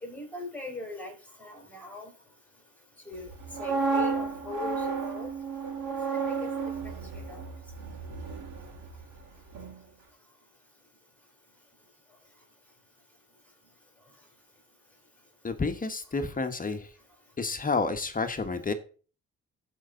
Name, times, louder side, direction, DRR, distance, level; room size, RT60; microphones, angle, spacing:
voice 1, 0.0-1.1 1.4-2.1 3.0-3.3 3.6-5.3 5.8-6.5 6.8-7.4, left 3 dB, 5° left, 2 dB, 4.9 m, -41 dB
sound 1, 3.3-9.2 9.5-9.8, right 4 dB, 80° right, 3.7 m, -32 dB
voice 2, 15.4-16.9 17.4-18.7, left 4 dB, 30° left, 8 dB, 1.4 m, -30 dB
14.5 x 5.6 x 3.9 m, 0.38 s
cardioid pair, 90°, 30 cm